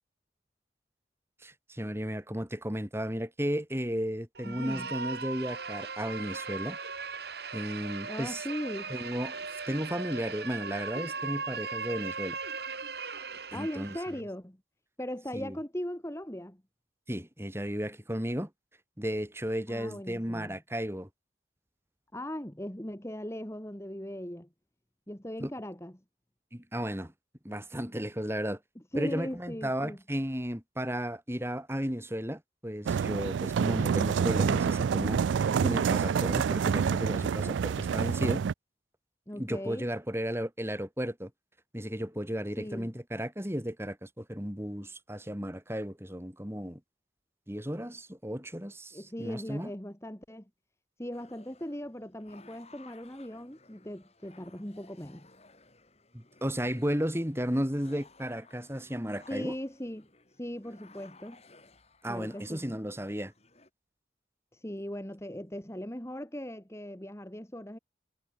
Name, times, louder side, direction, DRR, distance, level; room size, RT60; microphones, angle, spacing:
voice 1, 1.4-6.8 7.5-8.4 8.9-9.3 9.7-12.4 13.5-13.9 15.3-15.6 17.1-18.5 19.0-21.1 25.4-25.5 26.5-27.1 27.4-28.6 28.9-38.4 39.3-41.3 41.7-46.8 47.5-49.7 56.1-59.5 62.0-63.3, equal, 15° right, 5.1 m, -34 dB
sound 1, 4.3-14.2, right 5 dB, 60° right, 3.1 m, -38 dB
voice 2, 4.4-4.9 8.1-8.9 13.5-14.6 15.0-16.6 19.7-20.6 22.1-24.5 25.1-26.0 28.7-30.0 39.3-39.8 42.6-42.9 48.9-50.5 51.0-55.3 59.3-60.1 60.4-61.4 62.1-62.6 64.5-67.8, equal, 15° left, 1.7 m, -39 dB
sound 2, 32.9-38.5, right 6 dB, 80° right, 0.3 m, -27 dB
sound 3, 51.1-63.7, left 3 dB, 35° left, 7.9 m, -58 dB
head